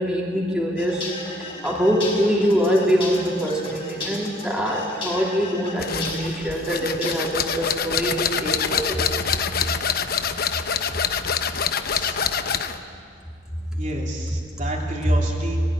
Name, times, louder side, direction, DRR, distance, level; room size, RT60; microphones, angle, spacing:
voice 1, 0.0-9.2, equal, 5° right, -3 dB, 2.9 m, -24 dB
sound 1, 0.8-7.7, left 2 dB, 30° left, 5.2 m, -35 dB
sound 2, 5.8-12.8, left 7 dB, 55° left, 1.0 m, -25 dB
voice 2, 13.7-15.6, right 1 dB, 45° right, -1 dB, 3.0 m, -31 dB
20.5 x 17.5 x 10.0 m, 2.3 s
head